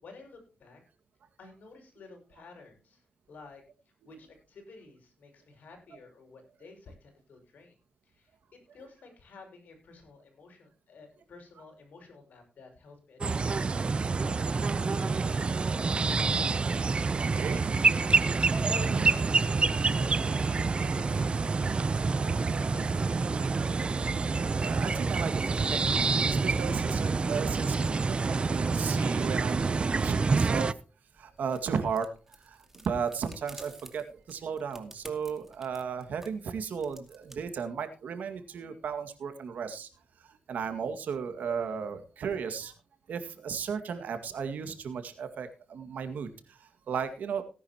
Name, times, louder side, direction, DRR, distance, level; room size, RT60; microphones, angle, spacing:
voice 1, 0.0-0.8 1.4-3.0 3.3-3.6 4.0-7.8 8.0-14.1 17.4-17.9 18.6-23.8, left 3 dB, 85° left, 3 dB, 6.0 m, -51 dB
sound 1, 13.2-30.7, right 4 dB, 40° right, 0.6 m, -27 dB
voice 2, 17.2-17.6 18.2-18.5 18.9-19.1 24.6-29.7 30.0-30.7 31.2-39.9 40.2-42.7 43.1-47.4, right 6 dB, 90° right, 7 dB, 2.0 m, -35 dB
sound 2, 31.1-37.4, right 1 dB, 10° right, 2.4 m, -53 dB
18.5 x 10.5 x 2.9 m, 0.34 s
cardioid pair, 90°, 3 cm